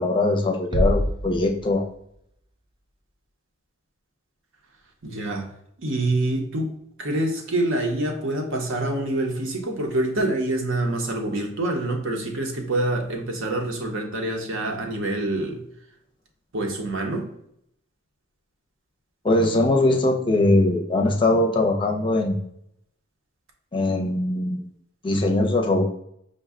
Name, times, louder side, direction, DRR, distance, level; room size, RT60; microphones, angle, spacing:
voice 1, 0.0-1.8 19.2-22.4 23.7-24.7 25.0-25.8, left 2 dB, 25° left, 2 dB, 0.5 m, -21 dB
sound 1, 0.7-2.3, equal, 20° right, 0.4 m, -26 dB
voice 2, 5.0-5.5 5.8-6.7 7.0-15.6 16.5-17.3, right 1 dB, 65° right, 3 dB, 0.8 m, -26 dB
5.2 x 2.2 x 3.5 m, 0.73 s
head